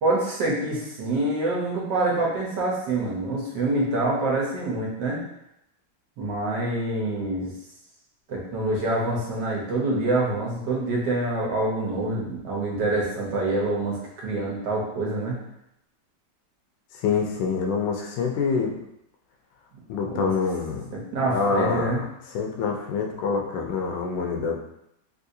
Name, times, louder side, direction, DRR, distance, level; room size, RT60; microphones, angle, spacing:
voice 1, 0.0-5.2 6.2-7.5 8.3-15.4 20.1-20.3 20.9-22.0, right 2 dB, 80° right, -4 dB, 1.5 m, -26 dB
voice 2, 16.9-18.8 19.9-20.9 21.3-21.9 22.3-24.6, left 5 dB, 85° left, 1 dB, 1.3 m, -26 dB
3.6 x 2.7 x 2.6 m, 0.81 s
omnidirectional pair, 1.9 m